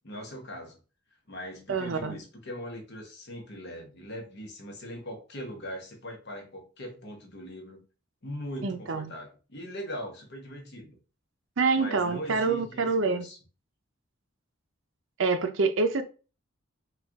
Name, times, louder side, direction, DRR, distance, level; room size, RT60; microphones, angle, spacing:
voice 1, 0.0-0.8 1.3-7.8 8.2-11.0 11.8-13.4, equal, 55° left, 1.1 m, -40 dB
voice 2, 1.7-2.2 8.6-9.1 11.6-13.2 15.2-16.0, right 4 dB, 65° right, 0.6 m, -26 dB
4.4 x 2.4 x 3.5 m
head